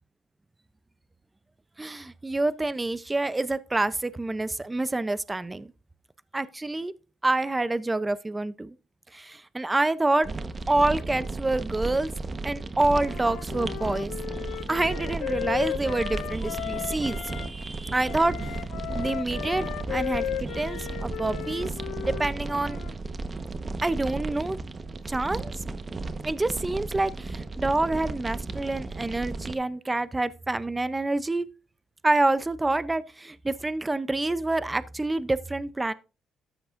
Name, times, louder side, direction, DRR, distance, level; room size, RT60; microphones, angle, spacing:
voice 1, 1.8-5.7 6.3-6.9 7.2-8.7 9.1-10.3 10.7-12.1 12.4-14.1 14.5-18.6 19.0-21.7 22.0-22.8 23.8-24.6 25.1-25.5 26.2-31.5 32.0-35.9, right 2 dB, 15° right, 0.5 m, -27 dB
sound 1, 10.2-29.6, right 3 dB, 35° right, 1.0 m, -34 dB
Wind instrument woodwind instrument, 12.8-17.5 18.1-22.9, left 12 dB, 90° left, 0.4 m, -35 dB
13.5 x 8.7 x 2.5 m
cardioid pair, 90°, 0 cm